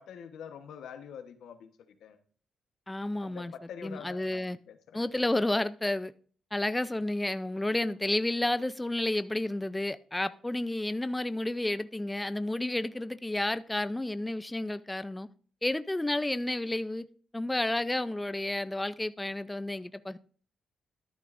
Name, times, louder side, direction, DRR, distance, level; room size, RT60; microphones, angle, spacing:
voice 1, 0.0-2.2 3.2-5.0, left 8 dB, 85° left, 1.1 m, -46 dB
voice 2, 2.9-3.5 3.8-4.6 4.9-6.1 6.5-15.3 15.6-17.0 17.3-20.2, left 1 dB, 10° left, 0.5 m, -31 dB
12.5 x 10.5 x 2.6 m
cardioid pair, 85°, 0 cm